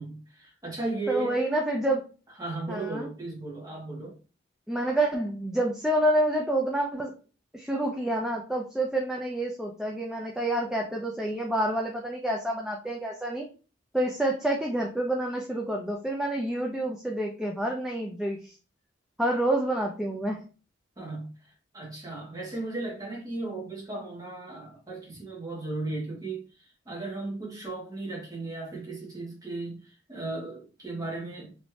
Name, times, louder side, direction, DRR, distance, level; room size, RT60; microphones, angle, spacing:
voice 1, 0.0-1.4 2.4-4.2 21.0-31.5, right 2 dB, 20° right, 1.3 m, -36 dB
voice 2, 1.1-2.0 2.7-3.1 4.7-7.1 7.5-13.5 13.9-18.5 19.2-20.4, right 1 dB, 5° right, 0.3 m, -28 dB
3.1 x 2.6 x 3.2 m
head